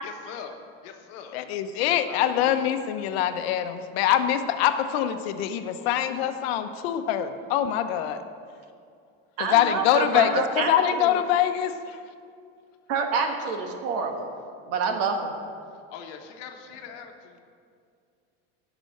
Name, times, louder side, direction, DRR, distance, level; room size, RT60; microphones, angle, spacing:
voice 1, 0.0-1.4 2.1-2.6 5.6-6.3 10.1-10.3 15.9-17.4, left 7 dB, 60° left, 4 dB, 1.3 m, -42 dB
voice 2, 1.3-8.2 9.4-10.3 10.6-11.7, left 10 dB, 80° left, 8 dB, 0.9 m, -24 dB
voice 3, 9.4-11.1 12.9-14.3 14.7-15.3, right 5 dB, 55° right, 4 dB, 1.5 m, -27 dB
11.5 x 6.1 x 7.8 m, 2.3 s
cardioid pair, 165°, 30 cm